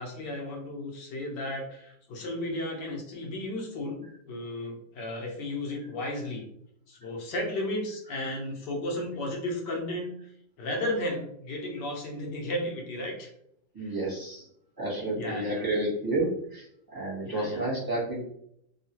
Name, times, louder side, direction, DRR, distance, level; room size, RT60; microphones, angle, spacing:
voice 1, 0.0-6.5 6.9-10.3 10.6-13.3 13.8-13.9 15.1-15.6 17.2-17.6, left 1 dB, 70° left, 0 dB, 1.4 m, -34 dB
voice 2, 13.7-14.5 14.8-18.2, right 1 dB, 20° right, -6 dB, 0.7 m, -31 dB
3.6 x 2.4 x 2.8 m, 0.72 s
omnidirectional pair, 2.1 m